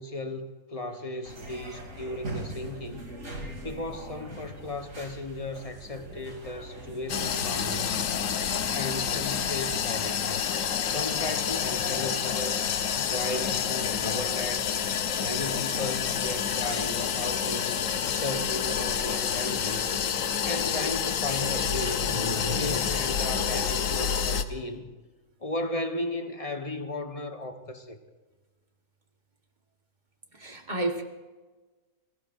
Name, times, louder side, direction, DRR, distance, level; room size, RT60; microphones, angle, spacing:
voice 1, 0.0-3.1 3.6-8.0 8.7-10.5 10.8-14.7 15.1-17.8 18.1-19.9 20.4-24.9 25.4-28.0, left 1 dB, 25° left, 1.2 m, -35 dB
sound 1, 1.2-9.8, right 1 dB, 60° right, 3.5 m, -42 dB
sound 2, 7.1-24.4, left 7 dB, 65° left, 1.2 m, -28 dB
voice 2, 10.5-10.9 14.1-14.2 30.3-31.0, right 2 dB, 30° right, 1.4 m, -33 dB
29.5 x 18.5 x 2.6 m
omnidirectional pair, 1.6 m